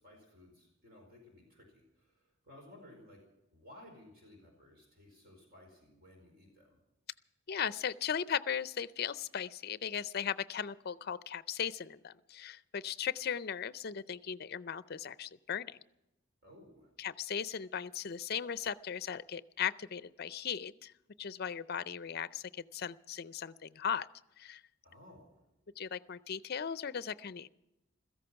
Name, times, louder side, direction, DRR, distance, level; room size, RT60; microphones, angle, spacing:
voice 1, 0.0-3.2 3.5-6.8 16.4-16.9 24.8-25.5, left 1 dB, 50° right, 1 dB, 4.7 m, -57 dB
voice 2, 7.5-15.8 17.0-20.9 21.2-24.1 24.4-24.6 25.8-27.5, left 8 dB, 50° left, 16 dB, 0.5 m, -37 dB
16.5 x 14.0 x 5.8 m, 0.94 s
head